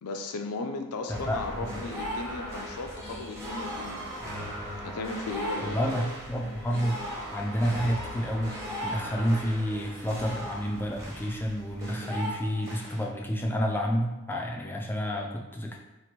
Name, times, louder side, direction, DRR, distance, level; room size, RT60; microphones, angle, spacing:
voice 1, 0.0-4.2 4.8-6.1, left 3 dB, 80° left, 5 dB, 0.4 m, -36 dB
voice 2, 1.1-1.8 5.6-7.0 7.3-8.6 8.8-15.8, equal, 10° left, 0 dB, 0.3 m, -30 dB
sound 1, 1.1-13.0, equal, 15° right, 0.9 m, -37 dB
2.9 x 2.6 x 4.3 m, 1.0 s
head